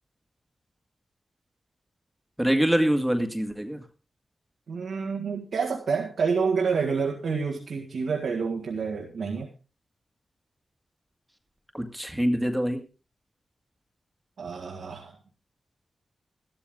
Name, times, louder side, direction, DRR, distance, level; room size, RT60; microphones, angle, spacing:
voice 1, 2.4-3.8 11.7-12.8, equal, 5° right, 5 dB, 1.9 m, -24 dB
voice 2, 4.7-9.5 14.4-15.1, right 5 dB, 85° right, -1 dB, 2.0 m, -28 dB
13.0 x 12.5 x 3.7 m, 0.33 s
cardioid pair, 50°, 0 cm